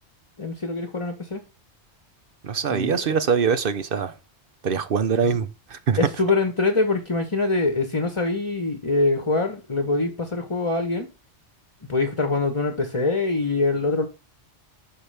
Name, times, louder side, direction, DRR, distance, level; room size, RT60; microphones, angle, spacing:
voice 1, 0.4-1.4 2.7-3.2 5.2-5.4 6.0-11.1 11.8-14.1, left 3 dB, 30° left, 1.0 m, -24 dB
voice 2, 2.4-4.1 4.6-6.0, right 6 dB, 55° right, 0.9 m, -23 dB
12.0 x 4.5 x 3.4 m
omnidirectional pair, 1.2 m